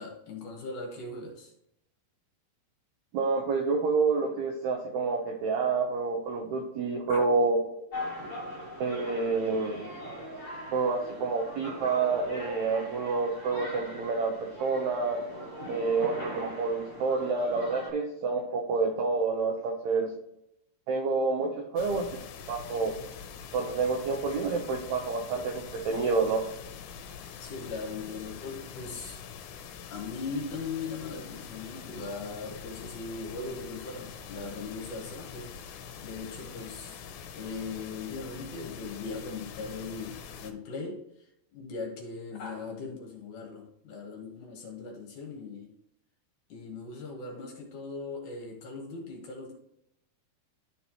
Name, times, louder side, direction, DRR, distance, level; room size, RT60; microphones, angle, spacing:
voice 1, 0.0-1.5 7.1-7.2 27.4-29.2 29.9-37.0 37.4-45.7 46.5-49.5, left 4 dB, 65° left, 2.3 m, -39 dB
voice 2, 3.1-7.6 8.8-9.8 10.7-15.2 15.7-20.1 20.9-22.2 22.5-22.9 23.5-26.4, right 4 dB, 85° right, 1.6 m, -28 dB
sound 1, 7.9-17.9, equal, 35° left, 1.3 m, -41 dB
sound 2, 21.8-40.5, left 7 dB, 80° left, 2.4 m, -44 dB
12.0 x 4.3 x 2.9 m
omnidirectional pair, 4.4 m